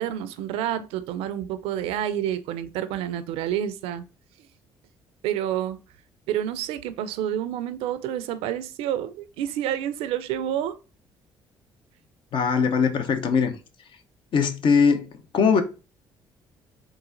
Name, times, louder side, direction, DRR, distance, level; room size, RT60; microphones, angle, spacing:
voice 1, 0.0-4.1 5.2-5.8 6.3-10.8, right 10 dB, 80° right, 0.4 m, -29 dB
voice 2, 12.3-13.5 14.3-15.1 15.3-15.6, left 6 dB, 60° left, 0.7 m, -20 dB
3.9 x 2.4 x 3.7 m
supercardioid pair, 65°, 10 cm